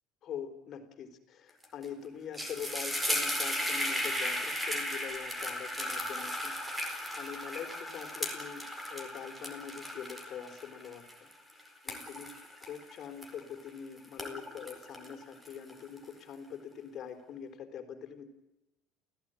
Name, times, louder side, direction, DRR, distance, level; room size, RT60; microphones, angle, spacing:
voice 1, 0.2-6.9 7.2-8.6 8.9-12.3 12.7-18.3, left 8 dB, 40° left, 7 dB, 4.1 m, -44 dB
sound 1, 1.6-1.9 2.1-13.7 14.0-16.0, equal, 10° right, 4.4 m, -36 dB
29.0 x 16.5 x 9.2 m, 0.96 s
cardioid pair, 160°, 0 cm